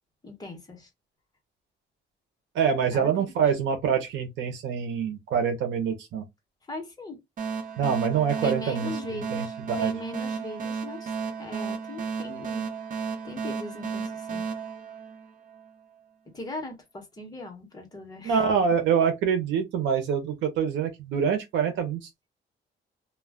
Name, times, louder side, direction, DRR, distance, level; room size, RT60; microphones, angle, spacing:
voice 1, 0.2-0.9 2.9-3.3 6.7-7.2 8.4-12.7 13.2-14.4 16.3-18.4, left 1 dB, 20° left, 1.0 m, -39 dB
voice 2, 2.5-6.2 7.8-8.9 9.3-9.9 18.2-22.1, right 7 dB, 90° right, 0.7 m, -25 dB
sound 1, 7.4-15.7, right 5 dB, 45° right, 0.8 m, -33 dB
2.3 x 2.2 x 3.4 m
cardioid pair, 140°, 19 cm